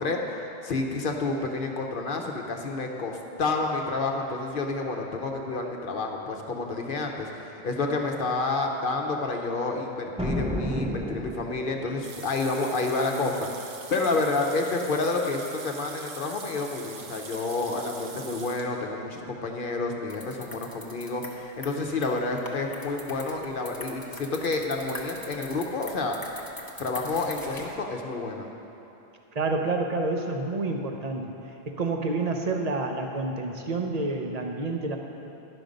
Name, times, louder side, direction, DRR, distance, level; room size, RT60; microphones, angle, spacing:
voice 1, 0.0-13.5 13.9-26.2 26.8-28.5, left 3 dB, 60° left, 2 dB, 0.9 m, -29 dB
sound 1, 10.2-11.9, equal, 10° right, 0.5 m, -30 dB
sound 2, 12.0-18.7, right 5 dB, 90° right, 1.0 m, -43 dB
sound 3, 20.1-27.8, left 2 dB, 20° left, 0.8 m, -42 dB
voice 2, 29.3-31.3 31.7-35.0, right 3 dB, 45° right, 2 dB, 0.8 m, -28 dB
11.0 x 6.1 x 5.2 m, 2.9 s
omnidirectional pair, 1.0 m